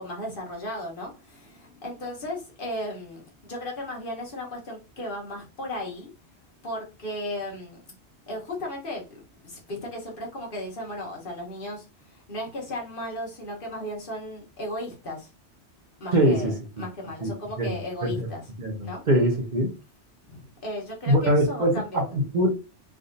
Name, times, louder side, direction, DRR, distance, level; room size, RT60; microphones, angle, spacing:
voice 1, 0.0-6.1 6.6-7.8 8.3-9.0 9.4-15.3 16.0-18.5 18.8-19.0 20.2-22.2, left 1 dB, 50° left, 1.2 m, -35 dB
voice 2, 16.1-16.5 17.2-17.3 17.6-17.7 18.0-18.3 18.6-19.7 21.1-22.5, equal, 45° right, 0.8 m, -23 dB
3.5 x 2.7 x 2.5 m
omnidirectional pair, 1.2 m